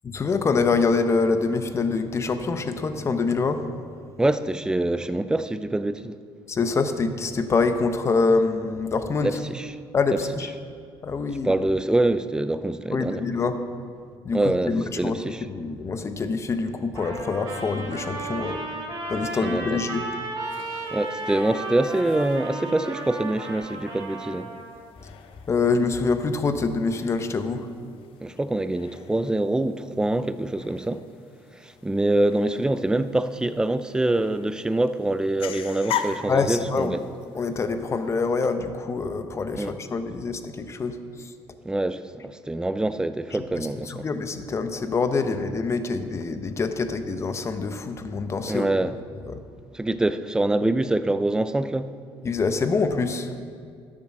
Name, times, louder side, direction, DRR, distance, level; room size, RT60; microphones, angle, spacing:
voice 1, 0.0-3.6 6.5-9.4 9.9-10.5 11.0-11.5 12.9-13.6 14.2-14.4 14.7-15.2 15.5-18.6 19.1-20.0 25.0-25.1 25.5-27.7 36.3-37.0 37.3-41.0 43.9-48.7 49.3-49.4 52.2-53.3, left 4 dB, 30° left, 0.7 m, -25 dB
voice 2, 4.2-6.2 9.2-9.8 10.1-10.2 11.4-13.2 14.3-15.5 19.4-19.8 20.9-24.5 28.2-31.0 31.5-37.0 39.5-39.8 41.6-44.1 48.5-49.0 49.7-51.9, right 2 dB, 5° right, 0.4 m, -25 dB
Trumpet, 16.9-24.8, right 2 dB, 45° right, 3.5 m, -34 dB
sound 1, 20.4-38.5, left 9 dB, 65° left, 0.8 m, -41 dB
12.0 x 7.5 x 6.1 m
cardioid pair, 125°, 10 cm